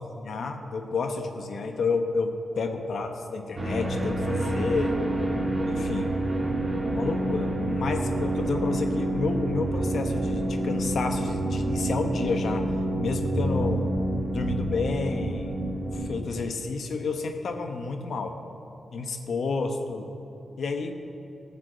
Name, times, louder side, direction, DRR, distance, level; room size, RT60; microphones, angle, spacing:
voice 1, 0.0-5.0 5.7-6.3 6.9-12.7 13.0-13.9 14.3-15.5 15.9-18.4 18.9-20.1 20.6-20.9, left 4 dB, 75° left, 5 dB, 1.0 m, -30 dB
sound 1, 3.6-16.1, right 1 dB, 35° right, 2.2 m, -28 dB
14.0 x 6.0 x 7.8 m, 2.9 s
cardioid pair, 70°, 0 cm